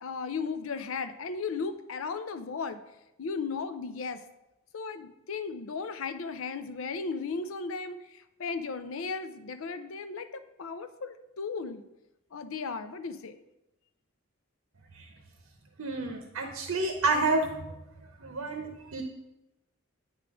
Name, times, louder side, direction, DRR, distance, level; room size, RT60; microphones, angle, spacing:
voice 1, 0.0-2.8 3.2-4.2 4.7-11.9 12.3-13.4, left 4 dB, 75° left, 11 dB, 0.5 m, -36 dB
voice 2, 15.8-17.6 18.2-19.0, right 3 dB, 90° right, 3 dB, 0.8 m, -29 dB
8.9 x 3.7 x 4.8 m, 0.93 s
head